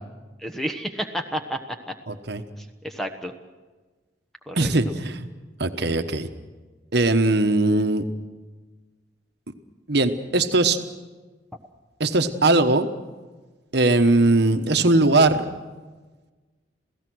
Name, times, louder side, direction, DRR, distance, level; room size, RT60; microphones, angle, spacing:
voice 1, 0.4-1.9 2.6-3.3 4.5-4.7, equal, ahead, 5 dB, 1.1 m, -31 dB
voice 2, 2.1-2.4 4.5-5.3 5.6-6.3 6.9-8.0 9.9-10.8 12.0-12.9 13.7-15.5, right 2 dB, 60° right, 8 dB, 1.2 m, -20 dB
28.0 x 16.5 x 6.3 m, 1.3 s
head